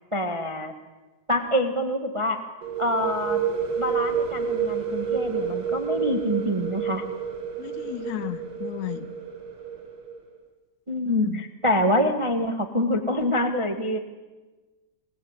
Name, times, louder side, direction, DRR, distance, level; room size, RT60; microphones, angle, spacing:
voice 1, 0.1-0.7 1.3-2.4 2.8-3.4 3.8-7.0 10.9-14.0, left 1 dB, 20° right, 7 dB, 0.9 m, -26 dB
sound 1, 2.6-10.2, right 7 dB, 45° right, 3.3 m, -29 dB
voice 2, 7.6-9.1 11.1-11.4, left 13 dB, 75° left, 12 dB, 2.5 m, -33 dB
27.0 x 18.0 x 9.8 m, 1.2 s
omnidirectional pair, 3.6 m